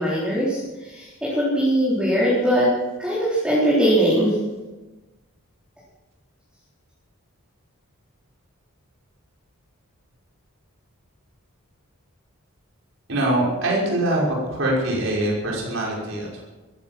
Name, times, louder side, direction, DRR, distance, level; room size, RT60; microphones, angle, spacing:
voice 1, 0.0-2.7 3.0-4.3, equal, 5° right, -8 dB, 4.1 m, -21 dB
voice 2, 13.1-14.2 14.5-16.4, right 1 dB, 60° right, -3 dB, 5.8 m, -23 dB
15.5 x 15.0 x 6.1 m, 1.2 s
head